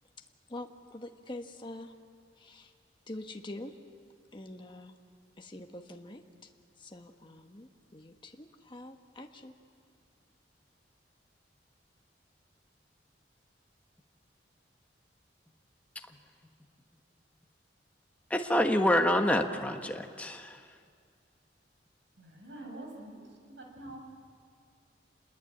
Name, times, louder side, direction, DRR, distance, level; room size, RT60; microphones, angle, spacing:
voice 1, 0.5-1.9 2.4-2.7 3.1-3.7 4.3-4.9 5.4-6.2 6.8-9.5, left 1 dB, 25° left, 4 dB, 1.2 m, -45 dB
voice 2, 18.3-20.6, left 1 dB, 10° left, 4 dB, 1.4 m, -27 dB
voice 3, 22.2-23.2 23.5-24.0, right 1 dB, 75° right, 2 dB, 6.3 m, -45 dB
27.5 x 21.5 x 9.0 m, 2.2 s
head